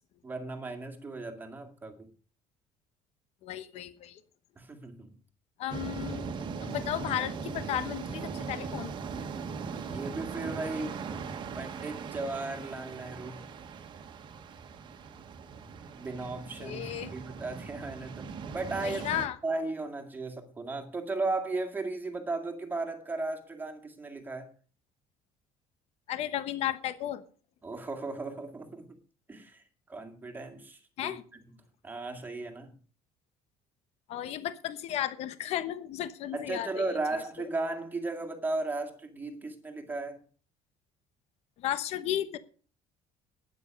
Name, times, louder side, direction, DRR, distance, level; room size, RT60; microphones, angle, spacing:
voice 1, 0.2-2.1 4.6-5.2 9.9-11.0 11.6-13.5 16.0-19.1 19.4-24.5 27.6-28.9 29.3-31.5 31.8-32.7 36.3-40.2, right 3 dB, 15° right, 2.1 m, -36 dB
voice 2, 3.4-4.2 5.6-6.3 6.6-8.9 16.6-17.1 18.8-19.4 26.1-27.2 31.0-31.2 34.1-36.8 37.4-37.5 41.6-42.4, left 11 dB, 55° left, 1.1 m, -34 dB
sound 1, 5.7-19.3, right 5 dB, 35° right, 1.5 m, -39 dB
12.5 x 10.0 x 5.3 m
cardioid pair, 170°, 13 cm